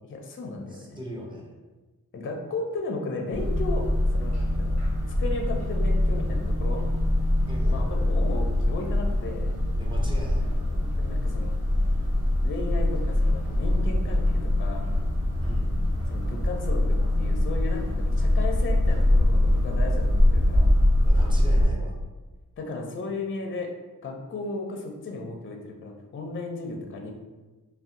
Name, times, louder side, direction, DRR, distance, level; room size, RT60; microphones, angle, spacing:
voice 1, 0.0-1.0 2.1-4.8 5.2-6.8 7.7-9.5 10.8-11.5 12.4-14.9 16.1-20.7 22.6-23.7 24.0-27.1, left 3 dB, 35° left, 2 dB, 0.4 m, -35 dB
voice 2, 0.7-1.5 7.5-7.9 9.8-10.5 15.4-15.8 21.0-21.9, equal, 15° right, -3 dB, 0.6 m, -39 dB
sound 1, 3.3-21.7, left 1 dB, 45° right, 1.3 m, -23 dB
2.6 x 2.1 x 3.6 m, 1.2 s
wide cardioid pair, 115°, 35 cm